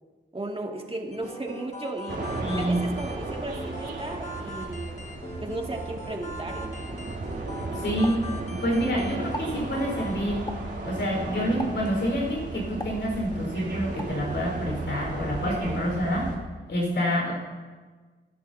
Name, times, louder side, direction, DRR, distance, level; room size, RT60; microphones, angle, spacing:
voice 1, 0.3-2.2 2.5-5.0 5.4-6.7 7.5-7.8 15.4-15.8, right 2 dB, 30° right, 0 dB, 2.3 m, -35 dB
sound 1, 1.1-10.2, left 1 dB, 40° left, 1.7 m, -42 dB
sound 2, 2.1-16.4, right 2 dB, 70° right, 3.0 m, -35 dB
voice 2, 2.4-2.8 7.7-10.4 10.8-16.4 16.7-17.3, equal, 90° left, -1 dB, 4.6 m, -27 dB
Explosion, 8.0-8.9 9.2-9.6 10.5-10.8 11.6-12.0 12.8-13.5 14.0-14.2, left 1 dB, 20° left, 1.3 m, -39 dB
23.0 x 11.0 x 2.8 m, 1.4 s
cardioid pair, 60°, 19 cm